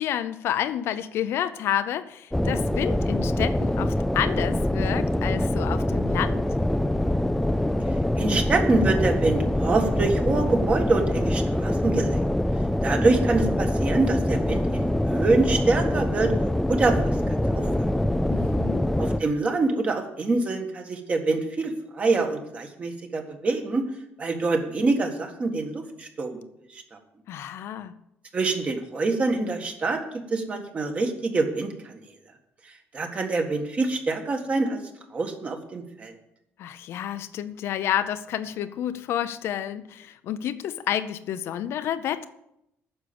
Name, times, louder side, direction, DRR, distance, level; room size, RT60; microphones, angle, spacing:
voice 1, 0.0-6.5 18.3-18.9 27.3-28.0 36.6-42.2, left 10 dB, 65° left, 11 dB, 0.6 m, -29 dB
sound 1, 2.3-19.2, left 1 dB, 5° left, 0.5 m, -24 dB
voice 2, 8.2-12.2 12.8-16.3 16.7-17.0 17.5-17.9 19.0-23.8 24.2-26.4 26.7-26.8 28.3-30.0 30.3-31.9 32.9-34.8 35.1-36.1, right 3 dB, 30° right, 4 dB, 1.6 m, -25 dB
9.6 x 6.5 x 8.6 m, 0.81 s
cardioid pair, 155°, 5 cm